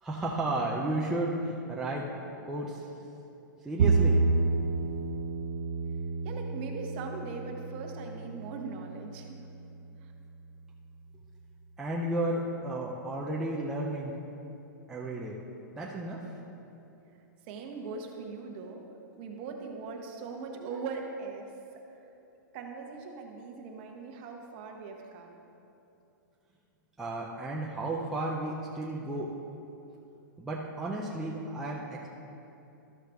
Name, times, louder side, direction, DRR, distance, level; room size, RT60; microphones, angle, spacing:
voice 1, 0.0-2.1 2.4-2.9 3.6-4.2 11.8-14.1 14.9-15.4 15.8-16.3 27.0-29.3 30.4-32.1, right 2 dB, 5° right, -4 dB, 0.4 m, -33 dB
Bowed string instrument, 3.8-10.1, right 3 dB, 70° right, 0.5 m, -30 dB
voice 2, 6.2-9.5 10.0-10.1 17.5-18.8 19.1-21.8 22.5-25.4, right 4 dB, 30° right, 2 dB, 0.9 m, -40 dB
13.0 x 6.5 x 3.4 m, 2.8 s
hypercardioid pair, 170°, 11 cm